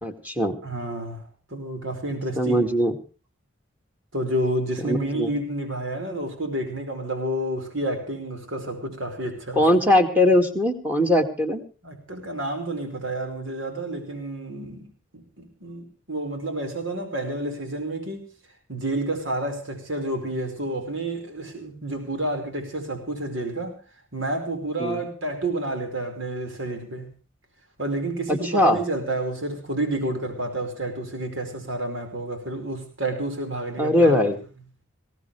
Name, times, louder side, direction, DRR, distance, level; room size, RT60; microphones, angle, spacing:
voice 1, 0.0-0.6 2.4-2.9 4.8-5.3 9.6-11.6 24.8-25.0 28.3-28.8 33.8-34.4, left 1 dB, 10° right, 4 dB, 2.2 m, -20 dB
voice 2, 0.6-1.2 1.5-2.6 4.1-9.7 11.8-18.3 18.7-23.7 24.1-27.1 27.8-34.3, right 1 dB, 85° right, 5 dB, 5.0 m, -30 dB
21.0 x 17.0 x 3.3 m, 0.35 s
head